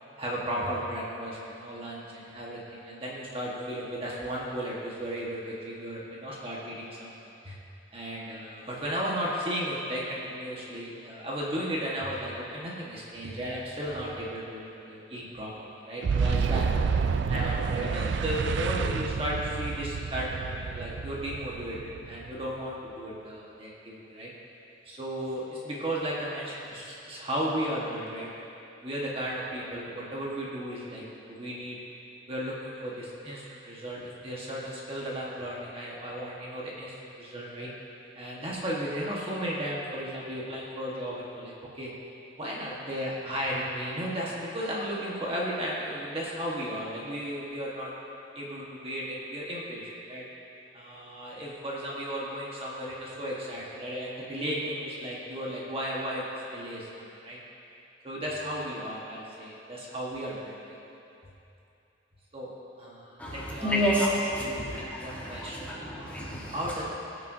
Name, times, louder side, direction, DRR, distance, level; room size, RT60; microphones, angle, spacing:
voice 1, 0.2-7.1 7.4-7.6 7.9-16.7 17.3-21.8 22.0-24.3 24.9-28.3 28.8-31.8 32.3-37.7 38.2-41.9 42.4-47.9 48.3-50.2 50.7-56.2 56.5-57.4 58.0-60.8 62.3-62.5 62.8-64.6 65.0-65.8 66.5-66.8, equal, 30° right, -5 dB, 1.4 m, -35 dB
Boom, 16.0-22.6, right 5 dB, 65° right, 0.3 m, -29 dB
voice 2, 63.6-66.5, equal, 10° left, -6 dB, 1.5 m, -29 dB
20.0 x 6.7 x 2.7 m, 2.8 s
head